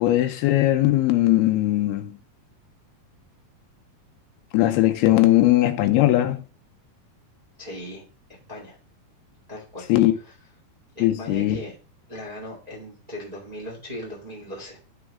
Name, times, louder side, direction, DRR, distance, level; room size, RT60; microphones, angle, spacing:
voice 1, 0.0-2.2 4.5-6.4 9.9-10.1 11.0-11.6, left 15 dB, 85° left, 2.7 m, -19 dB
voice 2, 7.6-8.0 8.5-8.8 9.5-10.3 10.9-11.7 12.1-14.8, equal, 20° right, 1.1 m, -38 dB
11.0 x 4.0 x 3.5 m
omnidirectional pair, 4.5 m